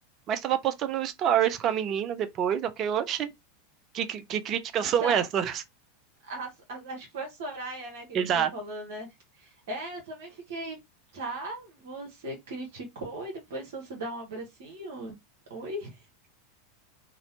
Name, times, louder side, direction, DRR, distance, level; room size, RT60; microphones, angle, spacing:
voice 1, 0.3-3.3 3.9-5.6 8.1-8.5, right 9 dB, 40° right, 0.4 m, -27 dB
voice 2, 4.7-5.2 6.2-9.1 9.3-10.8 11.1-15.2 15.5-16.0, right 1 dB, 65° right, 0.9 m, -38 dB
2.5 x 2.1 x 2.8 m
figure-of-eight pair, 90°, 0 cm